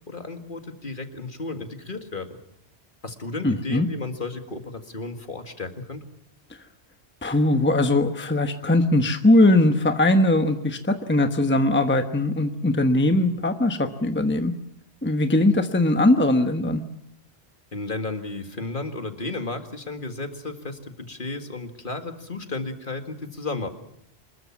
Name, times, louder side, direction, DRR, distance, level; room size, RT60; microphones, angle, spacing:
voice 1, 0.1-2.4 3.0-6.0 17.7-23.7, left 3 dB, 50° left, 6 dB, 2.2 m, -33 dB
voice 2, 3.4-3.9 7.2-14.5 15.0-16.8, left 1 dB, 10° left, 7 dB, 1.1 m, -20 dB
26.0 x 21.0 x 7.3 m, 0.72 s
omnidirectional pair, 1.1 m